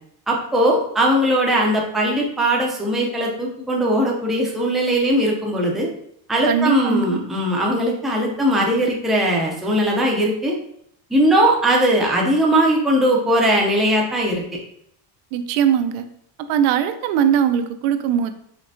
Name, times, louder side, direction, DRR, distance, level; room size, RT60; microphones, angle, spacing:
voice 1, 0.3-5.9 6.3-10.6 11.1-14.4, right 1 dB, ahead, -2 dB, 0.4 m, -19 dB
voice 2, 6.5-7.2 15.3-16.0 16.5-18.3, right 8 dB, 90° right, 9 dB, 0.7 m, -20 dB
5.3 x 3.4 x 2.6 m, 0.71 s
cardioid pair, 165°, 48 cm